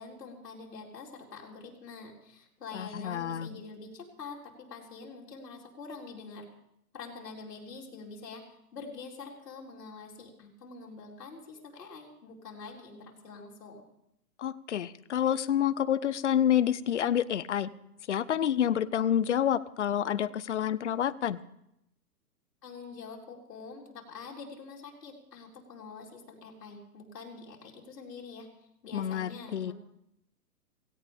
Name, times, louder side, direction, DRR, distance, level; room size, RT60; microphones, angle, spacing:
voice 1, 0.0-6.4 6.9-8.4 8.7-13.8 22.6-28.5 28.8-29.7, left 4 dB, 70° left, -1 dB, 4.0 m, -45 dB
voice 2, 2.7-3.5 14.4-17.7 18.1-21.4 28.9-29.7, left 10 dB, 45° left, 16 dB, 0.5 m, -28 dB
17.5 x 16.5 x 3.5 m, 0.80 s
hypercardioid pair, 170°, 49 cm